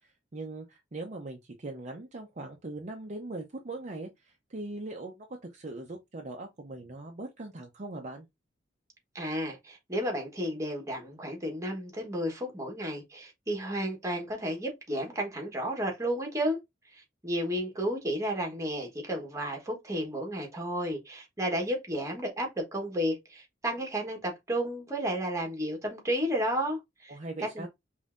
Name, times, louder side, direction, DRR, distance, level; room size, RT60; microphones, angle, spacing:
voice 1, 0.3-5.3 5.5-8.3 27.1-27.7, right 2 dB, 40° right, 0.6 m, -40 dB
voice 2, 9.1-16.6 17.2-27.1 27.5-27.7, equal, 15° right, 1.2 m, -32 dB
5.3 x 2.7 x 2.5 m
head